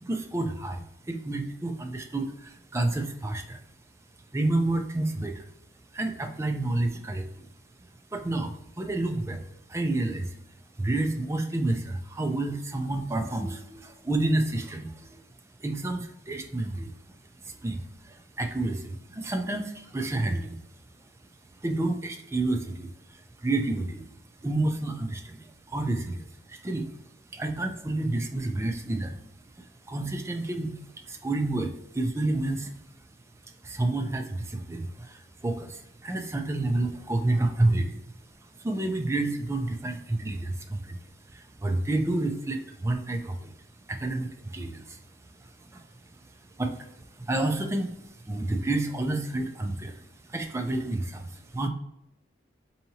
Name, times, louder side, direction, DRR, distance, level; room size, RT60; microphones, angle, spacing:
voice 1, 0.0-3.6 4.3-5.4 5.9-7.5 8.1-9.4 9.7-10.4 10.8-15.2 15.6-16.9 17.4-20.6 21.6-22.9 23.4-24.0 24.4-26.9 27.3-29.2 29.9-30.8 31.1-32.7 33.6-38.0 38.6-41.0 41.3-43.5 43.9-45.0 45.7-45.8 46.6-46.9 47.2-50.0 50.3-51.7, right 2 dB, 15° right, 5 dB, 0.3 m, -29 dB
4.6 x 2.8 x 2.7 m, 0.82 s
head